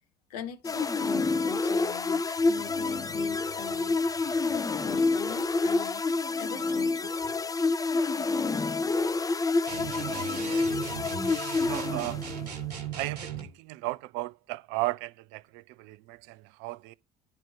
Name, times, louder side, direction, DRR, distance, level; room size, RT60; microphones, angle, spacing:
voice 1, 0.3-4.3 4.8-6.0 6.4-7.1, left 9 dB, 75° left, 1.4 m, -42 dB
sound 1, 0.6-12.5, left 3 dB, 15° left, 0.6 m, -28 dB
sound 2, 9.7-13.5, right 7 dB, 80° right, 1.6 m, -37 dB
voice 2, 9.9-10.8 11.6-12.3 13.0-16.9, right 20 dB, 65° right, 0.6 m, -36 dB
10.5 x 4.4 x 4.4 m
figure-of-eight pair, 55°, 20 cm